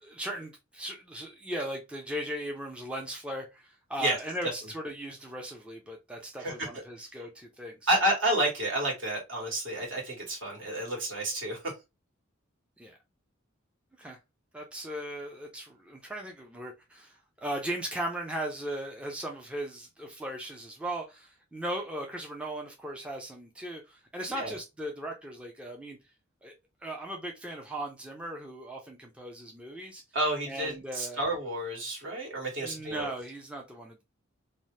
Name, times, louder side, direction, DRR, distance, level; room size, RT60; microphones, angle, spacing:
voice 1, 0.0-7.9 12.8-13.0 14.0-14.2 14.5-26.0 26.4-26.5 26.8-30.0 30.5-31.3 32.6-34.0, right 1 dB, 5° right, 0.4 m, -38 dB
voice 2, 7.9-11.7 24.3-24.6 30.1-33.1, right 1 dB, 65° right, 1.4 m, -30 dB
2.7 x 2.0 x 3.1 m
head